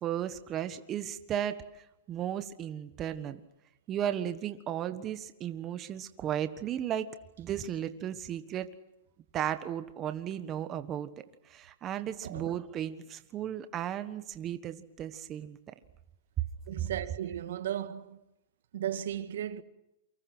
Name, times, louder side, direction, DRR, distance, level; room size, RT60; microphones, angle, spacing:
voice 1, 0.0-1.6 2.1-3.4 3.9-7.1 7.4-8.7 9.3-11.1 11.4-15.6, right 10 dB, 25° right, 1.4 m, -35 dB
voice 2, 12.2-12.6 16.7-18.2 18.7-19.6, right 11 dB, 75° right, 1.7 m, -35 dB
29.0 x 25.0 x 6.2 m
hypercardioid pair, 145°, 0 cm